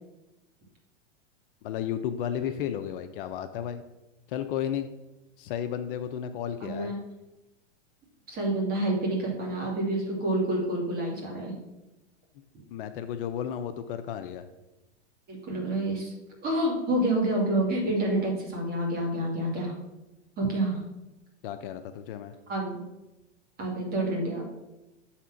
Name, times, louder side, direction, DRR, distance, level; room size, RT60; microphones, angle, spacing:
voice 1, 1.6-3.8 4.3-4.9 5.4-6.9 12.7-14.5 21.4-22.3, left 9 dB, 50° left, 9 dB, 0.6 m, -33 dB
voice 2, 6.6-7.0 8.3-11.5 15.3-16.1 16.4-19.7 20.4-20.8 22.5-22.8 23.6-24.6, right 1 dB, 25° right, -1 dB, 2.3 m, -28 dB
6.8 x 4.3 x 6.2 m, 1.0 s
hypercardioid pair, 140°, 35 cm